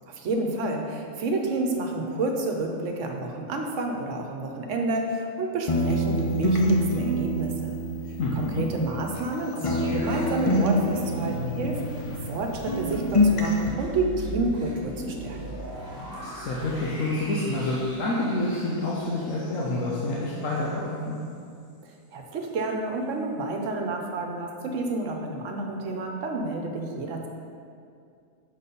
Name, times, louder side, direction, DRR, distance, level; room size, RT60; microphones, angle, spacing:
voice 1, 0.1-7.8 8.3-11.8 12.2-15.4 21.8-27.3, right 2 dB, 70° right, 2 dB, 1.1 m, -29 dB
sound 1, 5.7-9.3 9.6-12.4 12.7-13.7, left 1 dB, 50° left, 0.3 m, -26 dB
voice 2, 8.2-8.7 16.1-21.2, left 2 dB, 75° left, -5 dB, 1.2 m, -28 dB
sound 2, 9.5-20.7 21.1-21.2, equal, 15° left, 1.7 m, -38 dB
6.3 x 4.2 x 5.3 m, 2.3 s
omnidirectional pair, 1.4 m